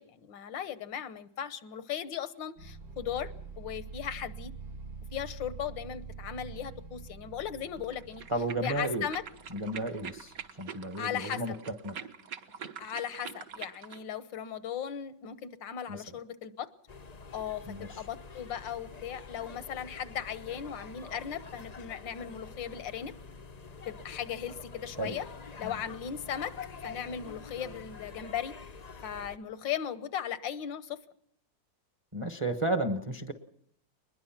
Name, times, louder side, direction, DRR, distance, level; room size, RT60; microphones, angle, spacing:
voice 1, 0.0-3.3 3.6-4.5 5.1-8.2 8.6-9.2 11.0-11.4 12.8-16.7 17.3-23.1 23.9-25.3 25.6-26.5 26.8-28.5 29.0-31.0, left 9 dB, 80° left, 14 dB, 1.7 m, -37 dB
sound 1, 2.6-10.5, right 4 dB, 75° right, 2.3 m, -46 dB
sound 2, 7.8-14.0, right 7 dB, 55° right, 1.5 m, -45 dB
voice 2, 8.3-9.0 9.5-12.0 15.9-16.0 17.7-18.0 25.0-25.2 25.6-25.7 32.1-33.3, right 2 dB, 20° right, 8 dB, 0.9 m, -33 dB
sound 3, 16.9-29.4, left 4 dB, 50° left, 0.5 m, -47 dB
22.5 x 20.5 x 5.9 m, 0.69 s
omnidirectional pair, 2.0 m